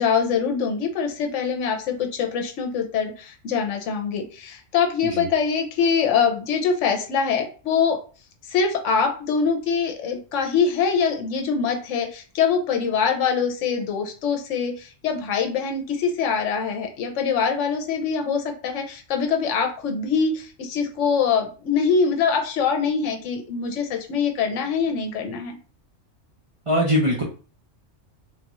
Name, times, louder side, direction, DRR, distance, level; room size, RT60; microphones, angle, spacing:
voice 1, 0.0-8.0 8.5-25.6, left 6 dB, 70° left, 4 dB, 1.0 m, -24 dB
voice 2, 26.7-27.2, equal, 45° right, -3 dB, 0.4 m, -21 dB
3.5 x 2.4 x 3.0 m, 0.37 s
omnidirectional pair, 1.3 m